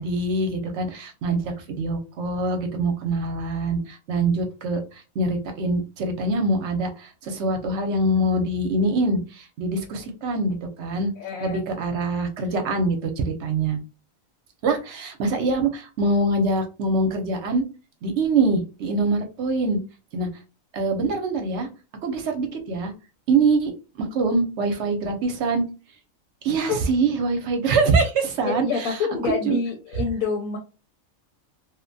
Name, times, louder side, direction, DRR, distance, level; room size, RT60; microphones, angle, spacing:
voice 1, 0.0-4.8 5.2-11.1 11.4-13.8 14.6-17.6 18.0-19.8 20.1-20.3 20.7-21.7 22.0-22.9 23.3-25.6 26.4-28.7 29.2-29.6, right 3 dB, 60° right, 4 dB, 0.9 m, -24 dB
voice 2, 11.2-11.6 26.7-26.8 28.4-30.6, left 5 dB, 90° left, 1 dB, 1.1 m, -27 dB
2.8 x 2.1 x 2.6 m, 0.31 s
omnidirectional pair, 1.4 m